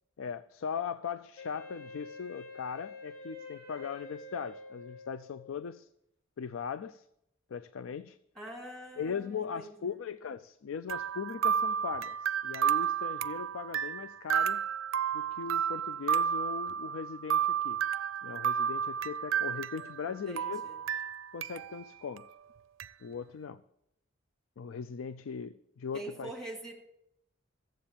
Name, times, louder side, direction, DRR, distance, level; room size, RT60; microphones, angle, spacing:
voice 1, 0.2-5.9 6.4-7.0 7.5-8.2 9.0-14.6 15.1-17.8 18.2-20.6 21.3-22.2 23.0-23.6 24.6-26.3, left 6 dB, 85° left, 13 dB, 0.4 m, -39 dB
Wind instrument woodwind instrument, 1.4-5.6, left 3 dB, 65° left, 7.1 m, -47 dB
voice 2, 8.4-10.0 20.1-20.8 25.9-26.7, right 2 dB, ahead, 1 dB, 2.6 m, -44 dB
sound 1, 10.9-20.1 20.4-21.8 22.2-22.3 22.8-22.9, right 8 dB, 75° right, 0.4 m, -31 dB
14.5 x 7.8 x 7.1 m, 0.80 s
head